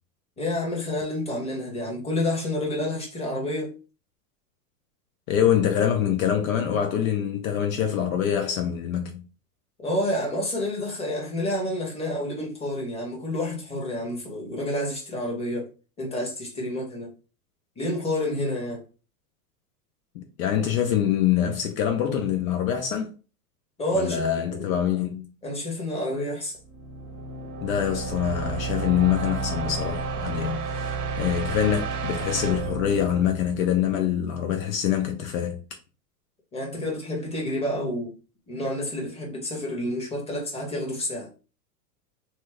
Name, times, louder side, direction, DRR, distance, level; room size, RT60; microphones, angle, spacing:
voice 1, 0.4-3.7 9.8-15.7 16.0-17.1 17.8-18.8 23.8-24.8 25.4-26.6 36.5-38.1 38.5-41.3, left 1 dB, 15° left, 1.2 m, -29 dB
voice 2, 5.3-9.3 20.1-23.1 23.9-25.3 27.6-35.6, left 9 dB, 60° left, 0.6 m, -25 dB
sound 1, 26.6-34.5, right 4 dB, 85° right, 0.9 m, -32 dB
2.9 x 2.2 x 3.5 m
hypercardioid pair, 120°, 47 cm